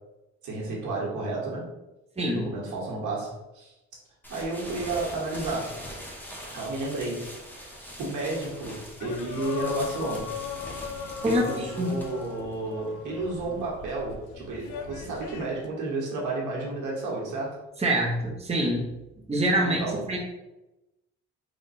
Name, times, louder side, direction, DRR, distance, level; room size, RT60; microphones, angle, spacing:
voice 1, 0.4-1.6 2.3-3.7 4.3-5.8 6.5-7.3 7.5-7.7 8.0-10.3 11.2-17.6 19.6-20.1, right 2 dB, 90° right, -3 dB, 1.4 m, -32 dB
voice 2, 2.2-2.5 11.2-11.4 11.8-11.9 17.8-18.9 19.3-20.2, right 1 dB, 20° right, -1 dB, 0.9 m, -25 dB
sound 1, 4.2-13.8, equal, 5° left, 1.1 m, -43 dB
sound 2, 9.0-15.7, left 6 dB, 85° left, 0.6 m, -38 dB
3.6 x 2.5 x 4.2 m, 0.97 s
cardioid pair, 90°, 30 cm